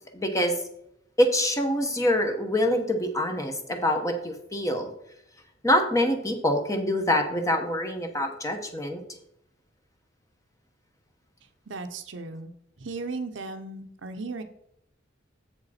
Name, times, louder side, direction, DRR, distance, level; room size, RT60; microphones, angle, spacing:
voice 1, 0.1-0.5 1.2-4.9 5.6-9.0, left 1 dB, 15° left, 5 dB, 1.0 m, -25 dB
voice 2, 11.7-12.5 12.8-14.4, right 3 dB, 70° right, 7 dB, 0.7 m, -36 dB
7.5 x 6.8 x 4.3 m, 0.76 s
head